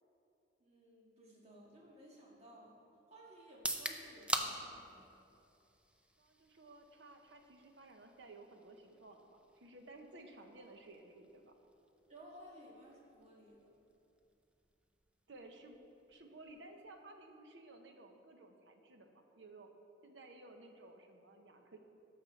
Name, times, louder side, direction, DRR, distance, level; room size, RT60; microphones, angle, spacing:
voice 1, 0.6-2.7 3.1-5.1 10.6-10.7 12.1-13.7, right 1 dB, 35° right, -3 dB, 1.8 m, -57 dB
sound 1, 3.5-17.3, right 1 dB, 5° right, 0.5 m, -47 dB
voice 2, 6.2-11.5 15.3-15.8 16.1-19.7 20.0-21.8, right 2 dB, 75° right, 5 dB, 0.9 m, -56 dB
11.5 x 6.8 x 4.1 m, 2.8 s
head